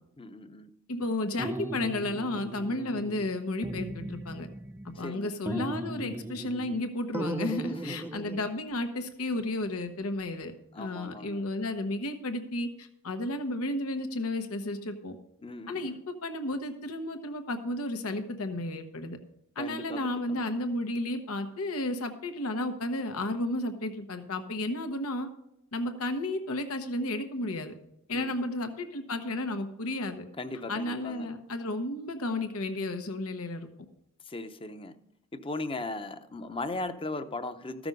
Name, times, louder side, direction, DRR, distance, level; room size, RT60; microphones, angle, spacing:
voice 1, 0.2-0.7 5.0-5.3 7.7-8.0 10.7-11.4 15.4-16.0 19.6-20.4 28.1-28.4 30.4-31.3 34.3-34.9 35.3-37.9, left 2 dB, 25° left, 10 dB, 0.7 m, -38 dB
voice 2, 0.9-4.5 4.8-15.2 15.7-19.2 19.6-25.3 25.7-27.7 28.1-30.2 30.7-33.7, left 1 dB, 90° left, 7 dB, 1.0 m, -33 dB
sound 1, 1.4-3.3 3.6-5.1 5.5-6.8 7.1-8.5, right 1 dB, 10° right, 0.4 m, -37 dB
14.5 x 6.1 x 5.2 m, 0.80 s
head